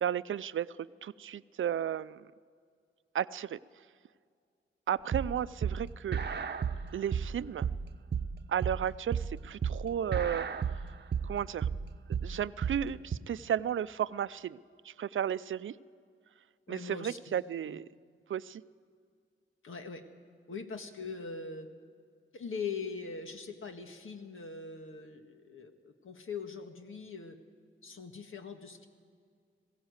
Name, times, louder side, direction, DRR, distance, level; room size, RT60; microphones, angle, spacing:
voice 1, 0.0-2.3 3.1-3.6 4.9-6.2 6.9-7.7 8.5-10.5 11.2-11.7 12.2-14.6 14.8-15.7 16.7-17.9 18.3-18.6, right 9 dB, 70° right, 16 dB, 0.5 m, -33 dB
sound 1, 5.1-13.2, right 7 dB, 55° right, 0.9 m, -33 dB
voice 2, 16.7-17.2 17.7-17.8 19.6-20.0 20.5-21.7 22.3-27.4 27.8-28.9, left 5 dB, 75° left, 5 dB, 1.9 m, -41 dB
21.0 x 16.5 x 8.1 m, 2.1 s
wide cardioid pair, 110°, 21 cm